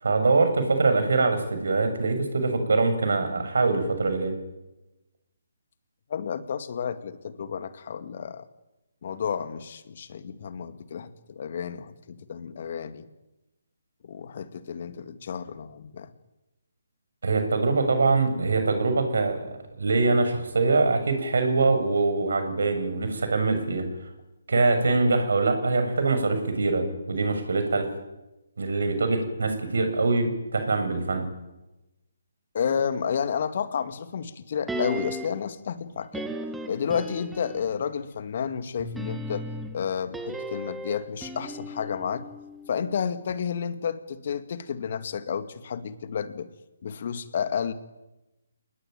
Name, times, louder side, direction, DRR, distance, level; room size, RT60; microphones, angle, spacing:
voice 1, 0.0-4.3 17.2-19.5 19.7-23.9 24.5-27.9 28.6-31.3, right 3 dB, 65° right, 7 dB, 7.2 m, -23 dB
voice 2, 6.1-8.4 9.0-13.1 14.0-16.1 32.5-36.3 36.7-39.5 39.7-42.3 42.7-46.5 46.8-47.7, left 7 dB, 50° left, 11 dB, 2.2 m, -31 dB
sound 1, 34.7-35.5 36.1-37.8 38.8-43.0 43.3-43.4, right 1 dB, 5° right, 2.0 m, -36 dB
29.5 x 19.5 x 9.3 m, 1.0 s
figure-of-eight pair, 140°, 0 cm